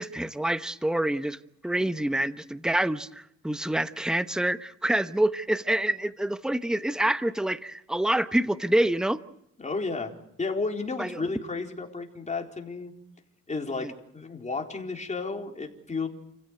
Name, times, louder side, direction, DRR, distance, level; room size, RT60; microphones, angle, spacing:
voice 1, 0.0-1.4 1.6-9.2 11.0-11.2 13.7-13.9, right 1 dB, ahead, 12 dB, 1.0 m, -27 dB
voice 2, 9.6-12.9 13.5-16.1, left 3 dB, 25° left, 2 dB, 4.3 m, -32 dB
29.0 x 16.0 x 8.3 m, 0.80 s
cardioid pair, 90°, 30 cm